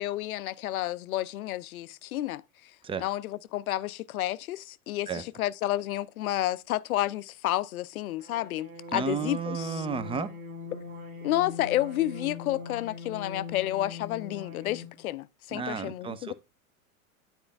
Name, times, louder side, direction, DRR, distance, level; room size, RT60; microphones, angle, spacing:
voice 1, 0.0-2.4 3.0-9.9 11.2-16.3, left 14 dB, 75° left, 0.6 m, -31 dB
sound 1, 8.2-15.0, left 4 dB, 70° right, 1.8 m, -41 dB
voice 2, 8.9-10.3 15.5-16.3, right 5 dB, 15° right, 0.5 m, -32 dB
9.8 x 4.4 x 3.3 m
hypercardioid pair, 95°, 43 cm